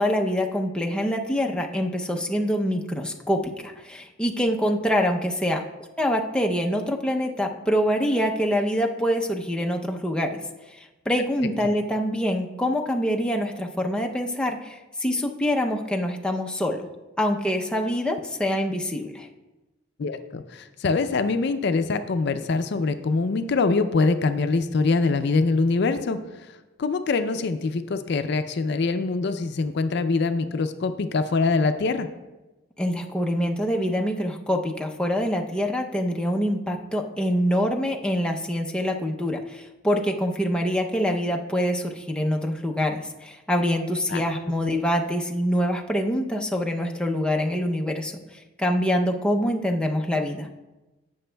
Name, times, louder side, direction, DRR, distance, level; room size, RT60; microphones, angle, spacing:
voice 1, 0.0-5.6 6.0-10.4 10.7-16.9 17.2-19.3 32.8-50.5, equal, 5° left, 1 dB, 0.6 m, -25 dB
voice 2, 20.0-26.2 26.8-32.1 44.1-44.2, left 3 dB, 60° left, 10 dB, 0.4 m, -24 dB
17.0 x 6.0 x 2.2 m, 1.1 s
head